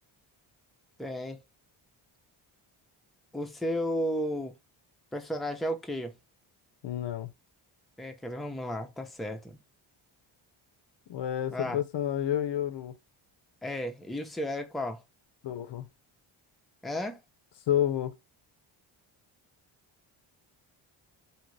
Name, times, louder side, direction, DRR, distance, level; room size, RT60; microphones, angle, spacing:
voice 1, 1.0-1.4 3.3-4.5 5.1-6.1 8.0-9.6 11.5-11.8 13.6-15.0 16.8-17.2, equal, ahead, 0.6 m, -33 dB
voice 2, 6.8-7.3 11.1-13.0 15.4-15.9 17.7-18.2, left 10 dB, 60° left, 0.6 m, -30 dB
2.8 x 2.5 x 3.1 m
cardioid pair, 75°, 49 cm